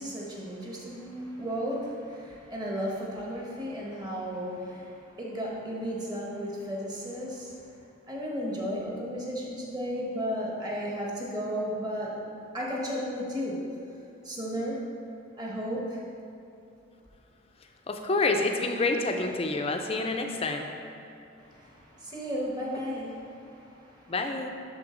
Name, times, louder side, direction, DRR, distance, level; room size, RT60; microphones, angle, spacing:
voice 1, 0.0-7.6 8.1-12.1 12.5-13.6 14.2-14.8 15.4-16.0 21.4-24.1, equal, 20° right, -4 dB, 1.2 m, -34 dB
voice 2, 17.9-20.7 24.1-24.5, left 3 dB, 30° left, 4 dB, 0.5 m, -28 dB
11.0 x 3.8 x 3.8 m, 2.7 s
head